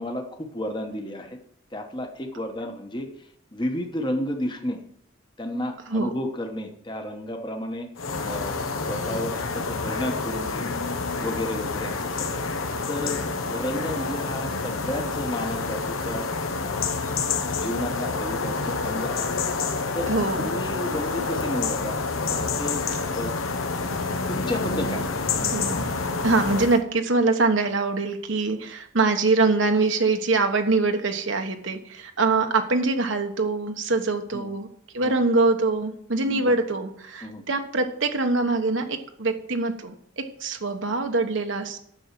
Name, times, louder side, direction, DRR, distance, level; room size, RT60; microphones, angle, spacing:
voice 1, 0.0-1.4 1.7-3.1 3.5-4.8 5.4-7.9 8.2-10.8 11.2-12.6 12.9-13.2 13.5-16.3 16.6-19.3 19.9-20.1 20.4-22.0 22.3-22.8 23.1-23.3 24.3-25.2 34.3-34.5 35.0-35.2 36.2-36.6 37.2-37.4, left 1 dB, 20° left, 4 dB, 1.1 m, -32 dB
sound 1, 8.0-26.8, left 4 dB, 85° left, 1.0 m, -28 dB
voice 2, 20.1-20.5 25.5-25.9 26.2-34.7 34.9-41.8, right 3 dB, 70° right, 5 dB, 1.2 m, -24 dB
10.0 x 6.9 x 6.0 m, 0.69 s
head